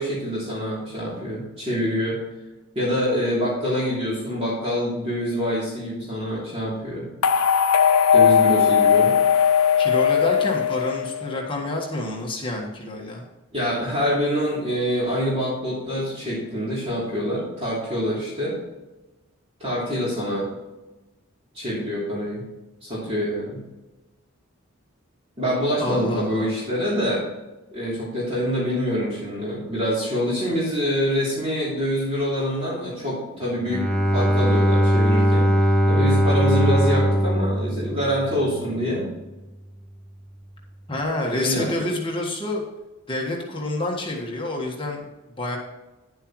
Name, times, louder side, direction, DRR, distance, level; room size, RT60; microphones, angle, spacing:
voice 1, 0.0-2.2 2.7-7.1 8.1-9.1 13.5-18.6 19.6-20.5 21.5-22.5 22.8-23.6 25.4-27.2 27.7-33.9 34.1-35.5 35.9-39.1 41.3-41.7, equal, 30° right, -7 dB, 3.1 m, -25 dB
tannoy announcement jingle, 7.2-11.4, left 7 dB, 90° left, 0.5 m, -18 dB
voice 2, 9.8-13.2 25.8-26.5 40.9-42.6 43.1-45.1 45.3-45.6, left 2 dB, 25° left, -1 dB, 1.5 m, -28 dB
Bowed string instrument, 33.6-38.6, equal, 5° left, 0.6 m, -20 dB
11.0 x 8.0 x 3.1 m, 1.1 s
head